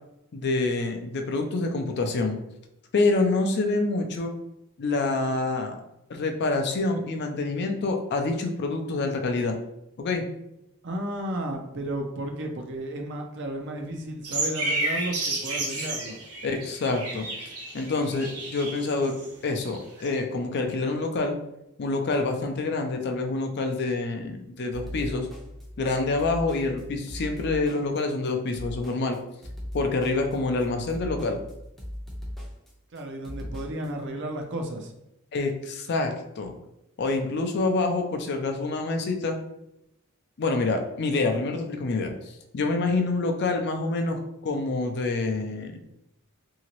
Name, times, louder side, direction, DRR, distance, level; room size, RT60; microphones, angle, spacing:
voice 1, 0.3-2.4 2.9-4.3 4.8-5.8 6.1-9.6 10.0-10.2 16.4-17.3 17.7-19.2 19.4-21.4 21.8-25.3 25.8-29.2 29.7-31.4 35.3-36.5 37.0-39.4 40.4-42.1 42.5-45.8, left 3 dB, 50° left, 4 dB, 0.4 m, -27 dB
voice 2, 10.8-16.2 32.9-34.9, right 1 dB, 55° right, 3 dB, 0.5 m, -33 dB
sound 1, 14.2-19.3 19.6-20.2, right 2 dB, 85° right, 1.2 m, -31 dB
sound 2, 24.7-33.9, equal, ahead, 0.5 m, -39 dB
2.9 x 2.7 x 2.9 m, 0.84 s
head